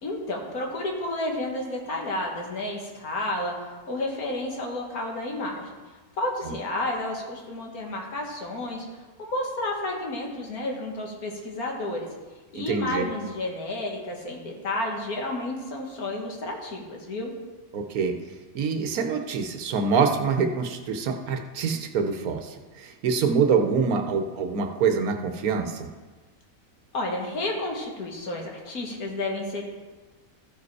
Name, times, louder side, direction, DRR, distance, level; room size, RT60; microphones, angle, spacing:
voice 1, 0.0-3.5 3.9-5.7 6.2-8.9 9.2-12.1 12.5-17.3 26.9-29.6, left 1 dB, 80° left, 0 dB, 1.9 m, -31 dB
voice 2, 12.5-13.1 17.7-18.2 18.5-25.9, right 5 dB, 85° right, 5 dB, 1.3 m, -25 dB
13.5 x 5.0 x 4.7 m, 1.3 s
omnidirectional pair, 1.5 m